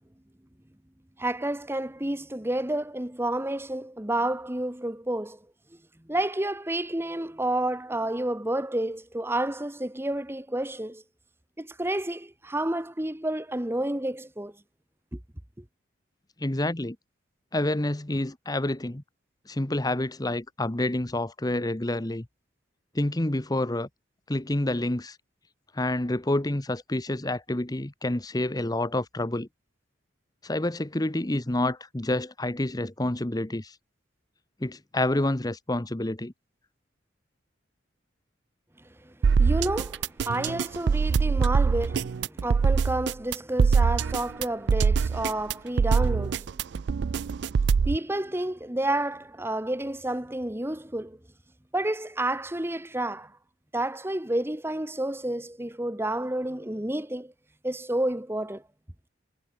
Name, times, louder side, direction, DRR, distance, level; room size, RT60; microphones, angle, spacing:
voice 1, 1.2-5.4 6.1-11.0 11.6-14.5 15.1-15.2 39.0-46.5 47.8-51.2 51.7-53.3 53.7-57.3 57.6-58.6, right 1 dB, 10° right, 1.3 m, -30 dB
voice 2, 16.4-17.0 17.5-19.0 19.5-22.3 22.9-23.9 24.3-25.2 25.7-29.5 30.4-33.7 34.6-36.3, left 1 dB, 20° left, 1.0 m, -28 dB
sound 1, 39.2-48.0, right 5 dB, 65° right, 0.4 m, -23 dB
head